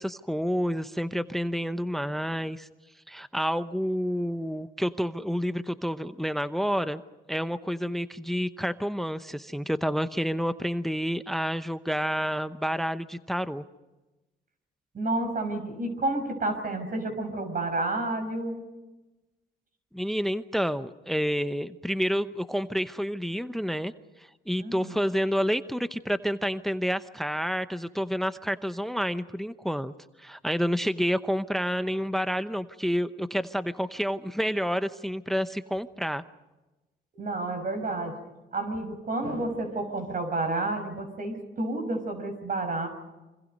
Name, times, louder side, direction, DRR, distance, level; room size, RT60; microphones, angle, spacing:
voice 1, 0.0-2.7 3.1-7.0 7.3-13.6 19.9-23.9 24.5-29.9 30.2-36.2, equal, ahead, 12 dB, 0.8 m, -29 dB
voice 2, 14.9-18.6 24.6-25.0 37.1-38.1 38.5-42.9, right 2 dB, 45° right, 6 dB, 6.3 m, -30 dB
28.0 x 25.5 x 5.4 m, 1.1 s
cardioid pair, 90°, 20 cm